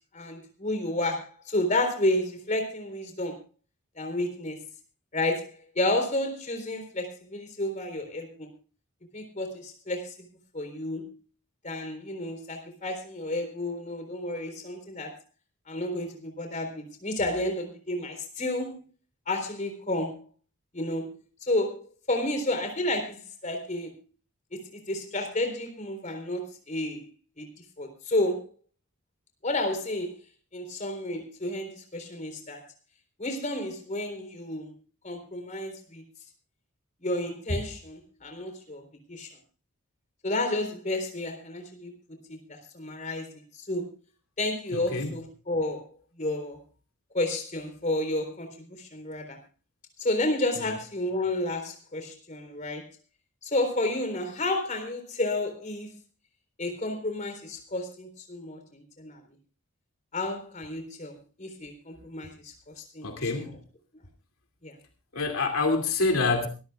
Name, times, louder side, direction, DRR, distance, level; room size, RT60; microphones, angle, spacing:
voice 1, 0.1-3.4 4.0-4.7 5.1-8.5 9.1-10.1 10.5-11.2 11.6-15.2 15.7-18.8 19.3-20.3 20.7-21.1 21.5-21.8 22.1-23.9 24.5-27.0 27.4-27.5 27.8-28.5 29.4-30.1 30.5-32.6 33.2-34.7 35.0-36.0 37.0-38.8 39.1-39.3 40.2-43.9 44.4-45.9 46.2-46.6 47.1-49.4 50.0-52.9 53.4-55.9 56.6-59.2 60.1-63.1 63.3-63.5 64.6-64.7, left 1 dB, 35° left, 5 dB, 3.9 m, -31 dB
voice 2, 44.7-45.1 50.6-50.8 63.0-63.6 65.1-66.5, left 3 dB, 80° left, 4 dB, 2.6 m, -27 dB
24.0 x 14.0 x 2.4 m, 0.34 s
head